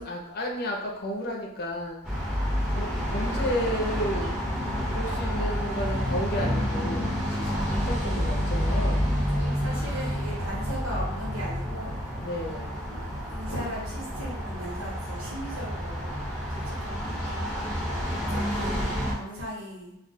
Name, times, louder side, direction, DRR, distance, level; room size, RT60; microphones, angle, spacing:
voice 1, 0.0-2.2 2.7-4.4 4.9-7.6 7.9-9.1 9.5-10.2 12.2-12.8 18.0-18.9, equal, 50° left, 0 dB, 0.6 m, -33 dB
sound 1, 2.0-19.1, equal, 5° right, 0.9 m, -29 dB
voice 2, 9.1-12.0 12.9-17.7 18.3-20.0, equal, 80° right, -5 dB, 1.3 m, -38 dB
2.4 x 2.3 x 3.9 m, 0.84 s
head